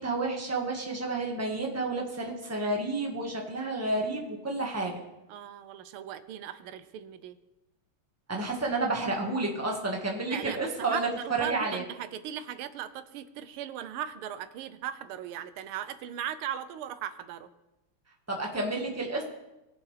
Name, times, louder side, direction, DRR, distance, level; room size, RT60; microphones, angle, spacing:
voice 1, 0.0-5.0 8.3-11.1 11.4-11.8 18.3-19.2, right 2 dB, 10° right, -1 dB, 1.3 m, -30 dB
voice 2, 5.3-7.4 10.3-17.5, right 10 dB, 90° right, 12 dB, 1.6 m, -38 dB
21.5 x 7.2 x 3.3 m, 1.0 s
omnidirectional pair, 2.3 m